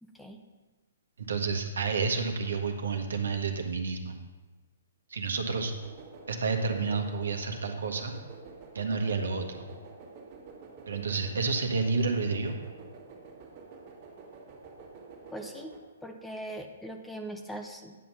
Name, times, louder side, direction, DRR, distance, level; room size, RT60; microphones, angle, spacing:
voice 1, 0.0-0.4 15.3-15.7 16.0-18.0, right 1 dB, 5° left, 4 dB, 0.7 m, -40 dB
voice 2, 1.2-4.1 5.1-5.7 6.3-8.1 8.7-9.7 10.9-12.6, right 4 dB, 75° right, 4 dB, 1.3 m, -30 dB
sound 1, 5.5-15.8, right 4 dB, 40° right, 1.7 m, -48 dB
10.0 x 6.2 x 5.5 m, 1.2 s
hypercardioid pair, 130°, 0 cm